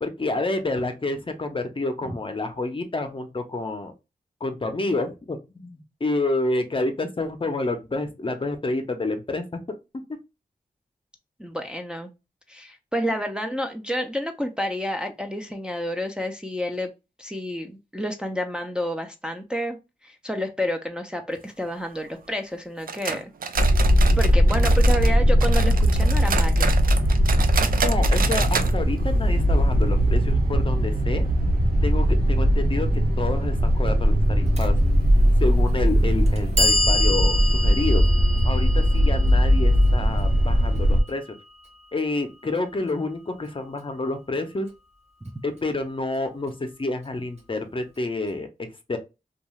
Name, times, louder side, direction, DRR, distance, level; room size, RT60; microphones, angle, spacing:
voice 1, 0.0-3.9 4.4-9.6 27.8-31.3 31.8-32.9 33.2-34.8 35.4-38.0 38.4-41.2 41.9-44.7 45.4-48.5 48.9-49.0, left 2 dB, 35° left, 6 dB, 0.6 m, -28 dB
voice 2, 11.4-12.1 12.5-16.9 17.2-19.8 20.0-23.3 23.6-23.8 24.2-26.7, equal, 5° right, 3 dB, 0.5 m, -29 dB
sound 1, 22.9-25.1 25.4-28.7 29.0-29.1 29.5-29.6 30.2-30.3, right 6 dB, 70° right, 0.4 m, -29 dB
sound 2, 23.6-41.0, equal, 85° right, 0.8 m, -19 dB
Clock, 34.6-34.7 35.6-35.7 36.3-42.3, left 1 dB, 45° right, 0.9 m, -29 dB
2.5 x 2.3 x 3.0 m, 0.26 s
cardioid pair, 55°, 15 cm